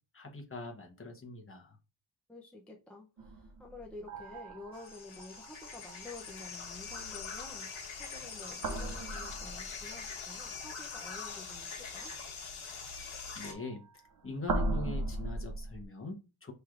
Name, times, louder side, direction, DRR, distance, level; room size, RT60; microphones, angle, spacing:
voice 1, 0.1-1.8 13.1-16.5, left 3 dB, 25° left, 0.9 m, -43 dB
voice 2, 2.3-12.1, left 2 dB, ahead, 0.5 m, -50 dB
sound 1, 3.2-6.6 8.4-10.0 13.4-15.8, right 2 dB, 45° right, 0.6 m, -38 dB
sound 2, 4.7-13.5, left 5 dB, 75° left, 1.2 m, -43 dB
5.7 x 3.3 x 2.4 m
wide cardioid pair, 140°, 49 cm